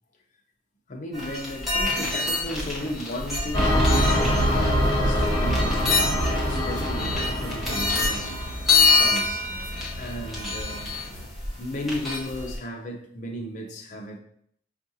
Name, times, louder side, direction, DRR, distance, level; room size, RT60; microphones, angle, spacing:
voice 1, 0.9-8.4 8.9-11.0 11.6-14.2, left 1 dB, 40° left, 0.6 m, -35 dB
sound 1, 1.1-12.6, left 3 dB, ahead, 1.0 m, -27 dB
sound 2, 3.2-11.3, equal, 75° left, 1.1 m, -40 dB
sound 3, 3.5-8.6, equal, 20° left, 1.2 m, -24 dB
5.4 x 2.5 x 2.7 m
head